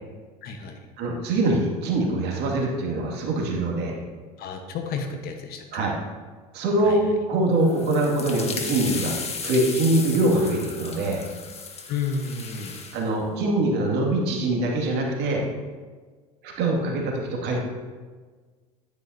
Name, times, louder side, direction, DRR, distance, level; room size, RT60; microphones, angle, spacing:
voice 1, 0.4-0.8 4.4-5.8 6.8-7.0 11.9-12.8, left 5 dB, 50° left, 5 dB, 1.3 m, -31 dB
voice 2, 1.0-4.0 5.7-6.0 6.5-7.0 7.3-9.1 9.4-11.3 12.9-15.4 16.4-17.6, right 2 dB, 55° right, -1 dB, 2.3 m, -23 dB
sound 1, 7.6-13.0, left 5 dB, 30° left, 1.5 m, -35 dB
10.5 x 9.5 x 2.8 m, 1.5 s
hypercardioid pair, 85°, 20 cm